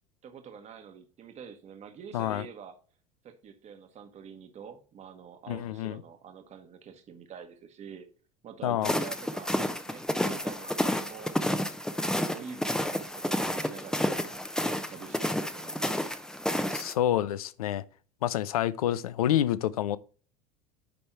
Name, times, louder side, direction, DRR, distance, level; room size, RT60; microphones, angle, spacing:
voice 1, 0.2-2.8 3.2-8.1 8.4-11.4 12.0-16.2, right 7 dB, 40° right, 1.2 m, -46 dB
voice 2, 2.1-2.4 5.5-6.0 8.6-8.9 16.7-17.8 18.2-20.0, left 12 dB, 85° left, 0.5 m, -28 dB
sound 1, 8.8-16.9, left 1 dB, 5° left, 0.7 m, -30 dB
10.0 x 3.4 x 4.5 m
hypercardioid pair, 80°, 18 cm